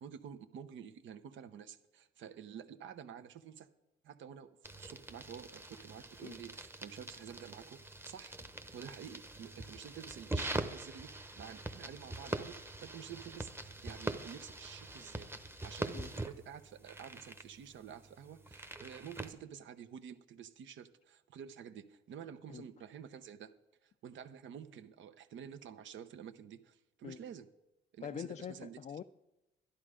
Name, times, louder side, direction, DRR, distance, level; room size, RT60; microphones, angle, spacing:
voice 1, 0.0-3.7 4.0-8.4 8.7-23.5 23.8-27.5 27.9-28.8, right 8 dB, 70° right, 11 dB, 0.8 m, -50 dB
sound 1, 4.6-19.3, right 2 dB, 10° right, 0.9 m, -43 dB
voice 2, 28.0-29.0, left 8 dB, 35° left, 9 dB, 0.4 m, -44 dB
11.5 x 11.0 x 5.0 m, 0.91 s
cardioid pair, 90°, 20 cm